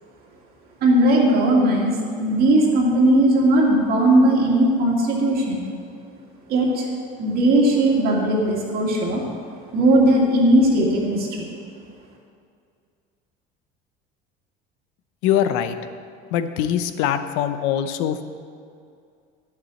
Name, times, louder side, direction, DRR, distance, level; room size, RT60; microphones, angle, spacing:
voice 1, 0.8-5.7 6.5-6.8 7.2-9.2 9.7-11.5, right 1 dB, 45° right, -3 dB, 2.3 m, -18 dB
voice 2, 15.2-15.8 16.3-18.2, left 10 dB, 80° left, 10 dB, 0.8 m, -22 dB
11.0 x 7.3 x 7.8 m, 2.3 s
cardioid pair, 165°, 21 cm